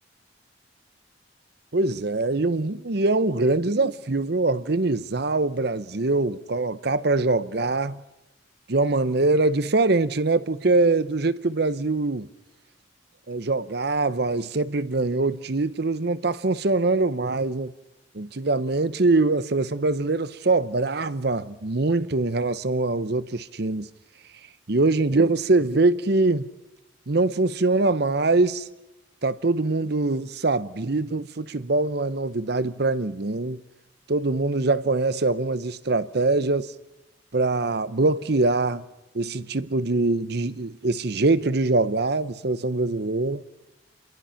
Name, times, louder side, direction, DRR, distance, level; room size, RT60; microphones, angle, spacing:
voice 1, 1.7-8.0 8.7-12.3 13.3-17.7 18.1-23.9 24.7-26.5 27.1-28.7 29.2-33.6 34.1-36.7 37.3-38.8 39.1-43.4, right 3 dB, 55° right, 0.8 m, -23 dB
29.0 x 23.0 x 5.8 m
head